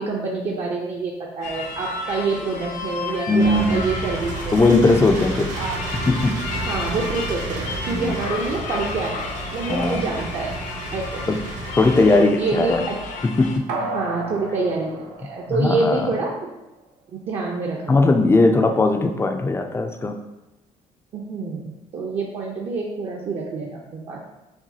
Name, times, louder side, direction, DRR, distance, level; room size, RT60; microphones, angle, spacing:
voice 1, 0.0-4.6 5.6-5.8 6.7-10.5 10.9-11.3 12.1-13.0 13.9-16.5 17.1-18.0 21.1-24.2, right 3 dB, 50° right, -2 dB, 0.6 m, -27 dB
sound 1, 1.4-13.6, left 4 dB, 65° left, 0.5 m, -33 dB
voice 2, 3.3-3.8 4.5-5.5 6.1-6.3 7.9-8.1 9.7-10.0 11.3-11.4 11.7-12.8 13.2-13.6 15.5-16.1 17.9-20.2, left 2 dB, 20° left, 5 dB, 0.4 m, -18 dB
sound 2, 3.4-12.2, right 2 dB, 65° right, 1.1 m, -31 dB
sound 3, 13.7-16.2 16.6-16.7, right 2 dB, 85° right, 0.6 m, -32 dB
5.9 x 2.3 x 2.7 m, 0.98 s
cardioid pair, 105°, 14 cm